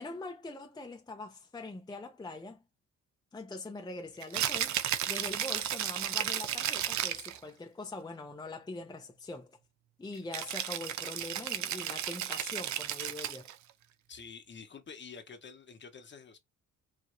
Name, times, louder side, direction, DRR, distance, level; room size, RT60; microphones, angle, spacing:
voice 1, 0.0-2.6 3.3-4.8 5.1-9.6 10.0-13.5, left 2 dB, 15° left, 0.7 m, -43 dB
Rattle (instrument), 4.2-7.4 10.3-13.6, right 11 dB, 70° right, 0.6 m, -34 dB
voice 2, 14.1-16.4, left 5 dB, 40° left, 1.0 m, -48 dB
4.8 x 2.6 x 2.6 m
cardioid pair, 90°, 30 cm